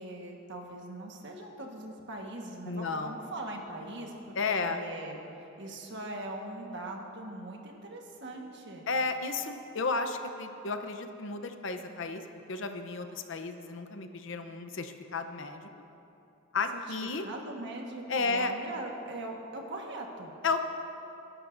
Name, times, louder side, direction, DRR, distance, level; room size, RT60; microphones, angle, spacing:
voice 1, 0.0-4.3 4.6-8.9 16.7-16.8 17.2-20.3, right 1 dB, 55° right, 1 dB, 1.4 m, -41 dB
voice 2, 2.6-3.2 4.3-4.9 8.9-12.2 12.5-15.7 16.5-17.2 18.1-18.5 20.4-20.6, left 4 dB, 60° left, 7 dB, 0.7 m, -33 dB
24.5 x 11.0 x 2.6 m, 2.9 s
head